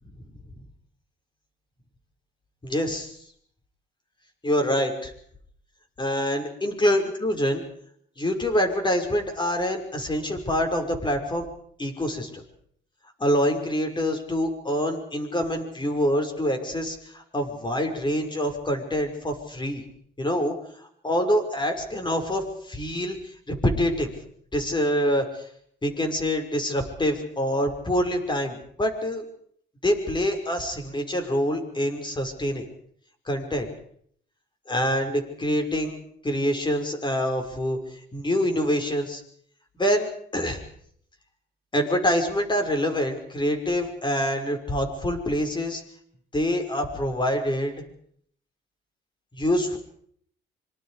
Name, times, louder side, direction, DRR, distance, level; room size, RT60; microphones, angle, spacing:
voice 1, 2.6-3.2 4.4-5.1 6.0-7.6 8.2-11.4 11.8-12.4 13.2-19.8 20.2-24.1 24.5-25.5 25.8-29.2 29.8-32.7 33.3-33.7 34.7-36.0 36.2-39.2 39.8-40.6 41.7-45.8 46.3-47.8 49.4-49.8, equal, 25° left, 4 dB, 6.0 m, -26 dB
26.5 x 25.5 x 5.1 m, 0.65 s
cardioid pair, 90°, 20 cm